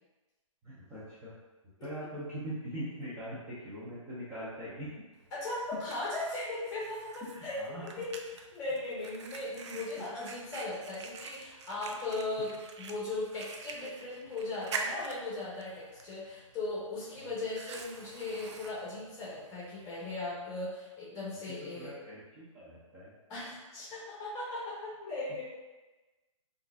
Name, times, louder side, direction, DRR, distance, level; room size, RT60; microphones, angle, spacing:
voice 1, 0.6-1.3 1.8-5.0 5.7-5.8 7.2-7.9 10.0-10.1 17.2-17.3 21.5-23.1, equal, 15° right, -11 dB, 0.6 m, -42 dB
Fire, 5.2-20.1, right 4 dB, 60° right, 0.4 m, -46 dB
voice 2, 5.3-8.1 8.5-12.5 12.8-21.9 23.3-25.4, left 2 dB, 20° left, -7 dB, 1.1 m, -38 dB
3.7 x 2.5 x 2.4 m, 1.2 s
hypercardioid pair, 145°, 17 cm